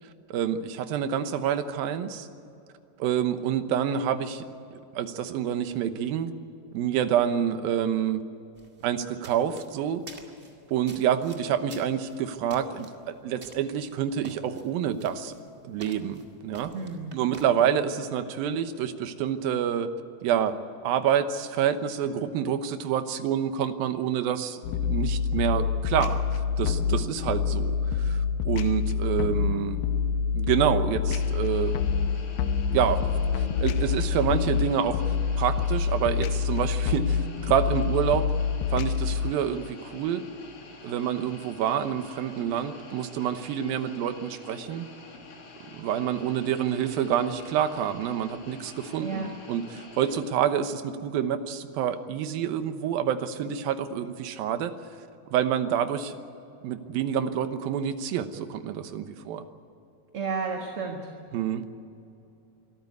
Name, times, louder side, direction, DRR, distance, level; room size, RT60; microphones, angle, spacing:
voice 1, 0.3-2.3 3.0-4.4 4.7-6.3 6.7-8.2 8.8-10.0 10.7-15.3 15.6-16.7 17.1-19.9 20.2-20.5 20.8-29.8 30.3-31.7 32.7-38.3 38.7-40.2 40.8-44.9 45.7-54.7 55.3-56.2 56.6-59.4 61.3-61.6, right 9 dB, 80° right, 9 dB, 2.9 m, -27 dB
sound 1, 8.6-17.5, right 2 dB, 25° right, 1.7 m, -50 dB
voice 2, 16.7-17.2 49.0-49.3 60.1-61.1, right 4 dB, 50° right, 2 dB, 2.0 m, -32 dB
sound 2, 24.6-39.3, left 6 dB, 80° left, 2.4 m, -26 dB
sound 3, 31.1-50.2, left 3 dB, 60° left, 4.5 m, -47 dB
24.5 x 13.5 x 9.5 m, 2.8 s
omnidirectional pair, 4.2 m